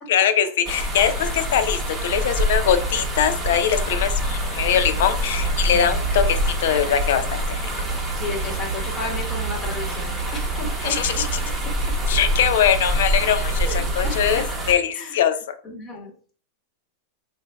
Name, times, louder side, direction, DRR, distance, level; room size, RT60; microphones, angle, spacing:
voice 1, 0.1-7.6 10.8-11.3 12.1-15.3, left 9 dB, 75° left, 10 dB, 0.5 m, -22 dB
sound 1, 0.6-14.7, right 1 dB, 10° right, 1.1 m, -25 dB
voice 2, 8.1-11.2 13.6-14.4 14.9-15.2 15.6-16.1, left 2 dB, 25° left, -1 dB, 1.6 m, -33 dB
3.7 x 2.7 x 3.5 m, 0.42 s
supercardioid pair, 135°, 0 cm